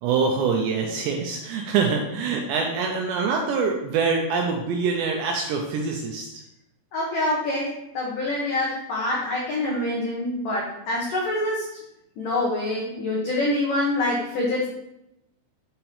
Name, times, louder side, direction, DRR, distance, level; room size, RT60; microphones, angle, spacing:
voice 1, 0.0-6.3, right 5 dB, 85° right, 1 dB, 2.6 m, -24 dB
voice 2, 6.9-11.8 12.2-14.7, left 1 dB, 85° left, -4 dB, 1.9 m, -26 dB
7.3 x 6.0 x 3.3 m, 0.85 s
omnidirectional pair, 5.6 m